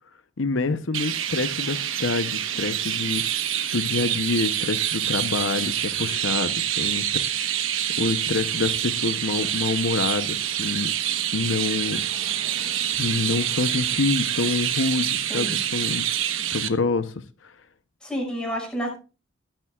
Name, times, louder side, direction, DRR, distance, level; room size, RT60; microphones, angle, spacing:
voice 1, 0.4-3.5 3.7-7.6 8.0-10.9 11.3-12.0 12.6-12.7 13.0-16.1 16.5-17.1 17.4-17.5, left 3 dB, 75° left, 0.8 m, -27 dB
Chirp tweet, 0.9-16.7, right 11 dB, 85° right, 1.2 m, -26 dB
voice 2, 18.0-18.9, equal, 5° left, 6.0 m, -29 dB
22.5 x 9.0 x 2.4 m
head